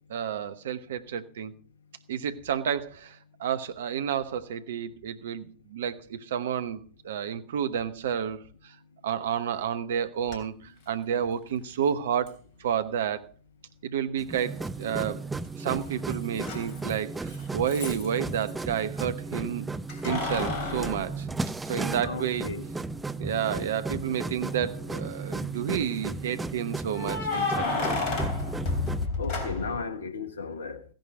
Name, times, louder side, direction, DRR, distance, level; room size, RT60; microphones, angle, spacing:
voice 1, 0.1-1.5 2.1-8.7 9.0-10.5 10.9-13.3 13.8-15.2 15.6-19.6 20.0-21.3 21.7-22.5 23.2-27.9, right 8 dB, 60° right, 1.0 m, -30 dB
Keys jangling, 10.3-10.4 12.3-12.4 14.6-15.2 15.4-18.6 19.9-22.0 22.5-22.6 24.4-24.9 26.9-29.9, left 3 dB, 40° left, 3.4 m, -32 dB
sound 1, 14.2-29.1, right 3 dB, 10° right, 0.6 m, -35 dB
voice 2, 22.0-22.7 29.2-30.8, left 4 dB, 70° left, 1.3 m, -35 dB
15.5 x 10.5 x 4.9 m
figure-of-eight pair, 90°, 0 cm